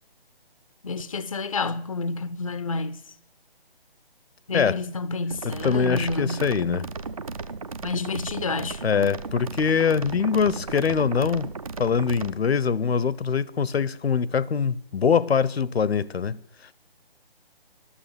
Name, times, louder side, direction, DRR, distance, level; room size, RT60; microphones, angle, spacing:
voice 1, 0.8-3.0 4.5-6.4 7.8-8.8, left 4 dB, 35° left, 0.4 m, -29 dB
sound 1, 5.3-12.3, right 4 dB, 35° right, 0.5 m, -35 dB
voice 2, 5.4-6.9 8.8-11.5 11.8-16.4, left 6 dB, 85° left, 0.7 m, -23 dB
11.5 x 7.1 x 8.6 m
hypercardioid pair, 165°, 30 cm